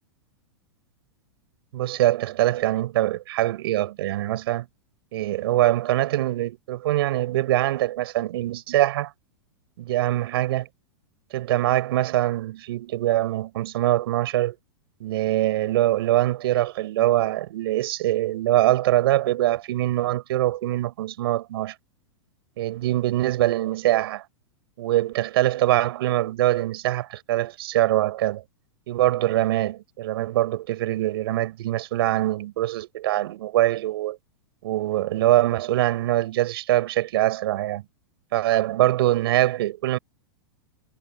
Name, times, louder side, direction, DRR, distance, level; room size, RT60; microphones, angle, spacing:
voice 1, 1.7-4.7 5.1-9.1 9.8-10.7 11.3-14.6 15.0-21.8 22.6-24.3 24.8-28.4 28.9-34.2 34.6-37.8 38.3-40.0, right 15 dB, 65° right, 5.4 m, -23 dB
hypercardioid pair, 120°, 14 cm